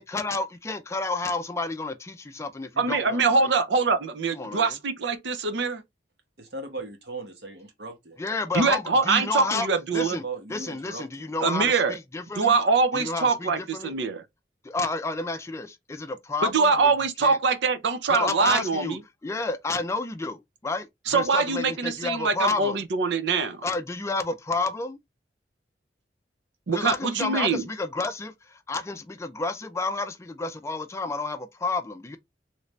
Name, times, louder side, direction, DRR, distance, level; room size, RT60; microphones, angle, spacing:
voice 1, 0.0-3.5 4.3-4.7 8.2-10.2 10.5-12.5 12.9-14.0 14.6-16.9 17.2-17.4 18.1-19.0 19.2-22.8 23.6-25.0 26.7-32.2, left 3 dB, 15° left, 0.4 m, -30 dB
voice 2, 2.8-5.8 8.5-10.2 11.4-12.0 12.4-14.2 16.4-19.0 21.1-23.6 26.7-27.7, right 4 dB, 85° right, 0.6 m, -23 dB
voice 3, 6.4-8.2 10.1-11.3, right 3 dB, 65° right, 1.1 m, -38 dB
3.2 x 2.6 x 3.1 m
head